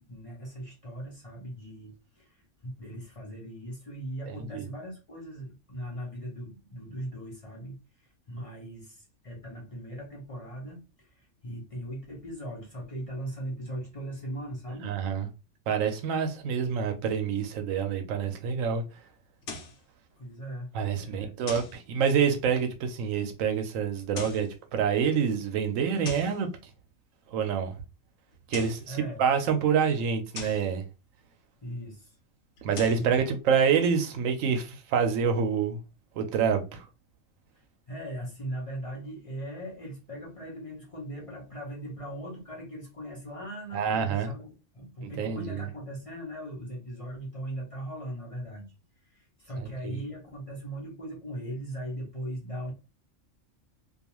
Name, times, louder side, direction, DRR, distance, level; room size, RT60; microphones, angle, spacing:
voice 1, 0.0-14.9 20.1-21.4 28.9-29.2 31.6-32.2 33.0-33.2 37.5-52.7, right 1 dB, 35° left, 0.7 m, -39 dB
voice 2, 14.8-15.3 15.7-18.8 20.7-26.5 27.3-27.7 28.5-30.8 32.6-35.8 36.2-36.9 43.7-44.3 45.0-45.6 49.8-50.0, right 7 dB, 85° right, 1.0 m, -27 dB
sound 1, 19.4-19.8 21.5-21.8 24.0-24.5 26.0-26.4 28.3-28.9 30.3-30.7 32.6-33.1, left 3 dB, 70° left, 1.0 m, -40 dB
2.4 x 2.3 x 2.9 m
omnidirectional pair, 1.3 m